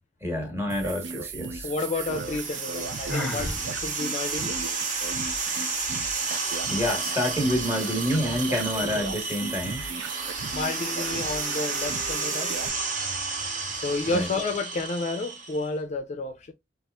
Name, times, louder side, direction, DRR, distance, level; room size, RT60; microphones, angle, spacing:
voice 1, 0.2-1.7 6.7-9.8 14.1-14.3, equal, 15° right, 1.1 m, -28 dB
sound 1, 0.7-12.7, right 5 dB, 80° right, 0.5 m, -36 dB
voice 2, 1.6-4.6 8.7-8.9 10.5-12.5 13.4-16.5, left 3 dB, 40° left, 0.4 m, -31 dB
sound 2, 1.9-15.7, right 4 dB, 45° right, 0.8 m, -32 dB
Sigh, 3.1-3.6, left 2 dB, 5° left, 0.7 m, -30 dB
4.1 x 2.4 x 2.2 m
head